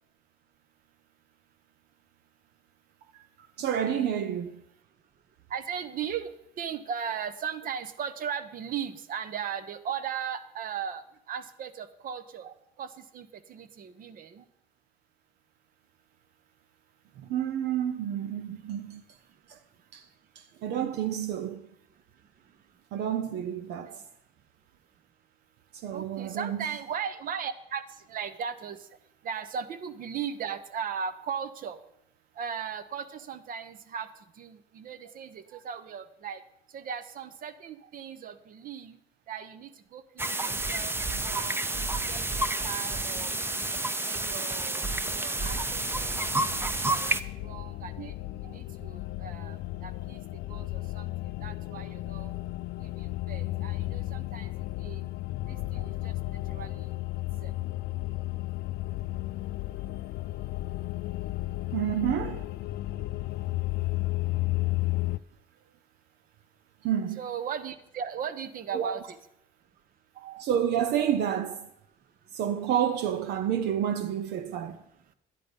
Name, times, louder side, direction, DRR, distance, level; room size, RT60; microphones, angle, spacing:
voice 1, 3.4-4.6 12.4-12.5 17.2-19.0 19.5-19.6 19.9-20.1 20.4-21.7 22.9-24.0 25.7-26.7 35.5-35.6 48.0-48.1 48.4-48.5 55.7-55.9 61.7-62.4 66.8-67.2 68.7-69.0 70.2-71.7 72.3-74.8, right 9 dB, 80° right, 0.8 m, -30 dB
voice 2, 5.5-6.3 6.6-12.5 12.8-14.4 23.9-24.0 25.9-28.8 29.2-31.8 32.4-34.1 34.4-36.4 36.7-38.9 39.3-40.9 41.2-41.6 42.1-43.7 44.0-44.8 45.1-46.1 46.5-48.1 48.4-50.2 50.5-51.1 51.4-52.3 52.8-54.5 54.8-55.1 55.5-56.9 57.4-57.5 67.2-69.2, right 7 dB, 55° right, 1.1 m, -37 dB
sound 1, 40.2-47.2, right 2 dB, 15° right, 0.7 m, -30 dB
sound 2, 45.4-65.2, left 18 dB, 75° left, 0.4 m, -34 dB
12.5 x 10.0 x 5.3 m
cardioid pair, 110°, 17 cm